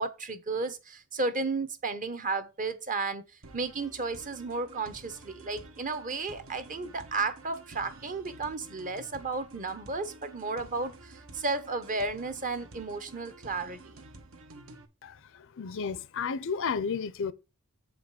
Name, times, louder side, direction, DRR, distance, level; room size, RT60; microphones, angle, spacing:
voice 1, 0.0-3.2 3.5-14.0, right 3 dB, 35° right, 1.0 m, -33 dB
sound 1, 3.4-14.8, right 2 dB, 65° right, 1.3 m, -51 dB
voice 2, 15.0-17.3, left 5 dB, 60° left, 0.6 m, -33 dB
7.5 x 5.2 x 5.7 m
head